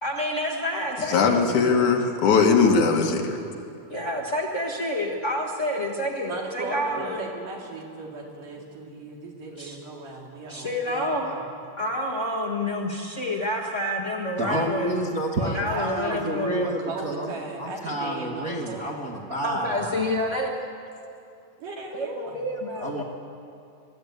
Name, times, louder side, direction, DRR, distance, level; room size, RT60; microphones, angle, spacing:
voice 1, 0.0-1.5 3.9-7.2 9.6-9.8 10.5-11.4 11.8-14.9 15.4-16.7 19.4-20.5 21.9-23.0, left 1 dB, 35° left, -2 dB, 1.2 m, -28 dB
voice 2, 1.1-3.4, left 5 dB, 70° left, 2 dB, 2.9 m, -20 dB
voice 3, 6.3-11.5 15.4-18.9 21.6-22.4, right 3 dB, 85° right, -1 dB, 4.2 m, -37 dB
voice 4, 14.4-17.3 17.6-20.1 22.7-23.0, equal, 45° right, -3 dB, 1.2 m, -29 dB
22.5 x 13.0 x 9.3 m, 2.5 s
omnidirectional pair, 3.7 m